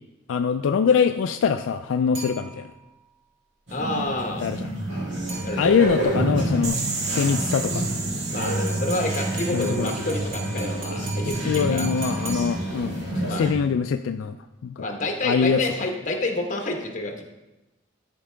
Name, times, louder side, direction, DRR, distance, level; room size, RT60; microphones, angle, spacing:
voice 1, 0.3-2.7 4.4-4.7 5.6-6.8 7.1-7.9 9.5-9.9 11.3-14.4 14.6-14.9 15.2-15.6, left 6 dB, 75° left, 8 dB, 0.3 m, -23 dB
sound 1, 2.1-3.0 5.3-6.0 8.4-13.0, right 3 dB, 90° right, 2.4 m, -39 dB
voice 2, 3.7-4.5 5.4-5.7 8.3-11.9 13.3-13.5 14.8-17.2, left 2 dB, 40° left, 2 dB, 1.1 m, -28 dB
sound 2, 3.7-13.5, right 1 dB, 65° right, 2.5 m, -28 dB
sound 3, 6.6-11.4, right 4 dB, 35° right, 0.9 m, -34 dB
12.5 x 4.7 x 3.4 m, 1.0 s
head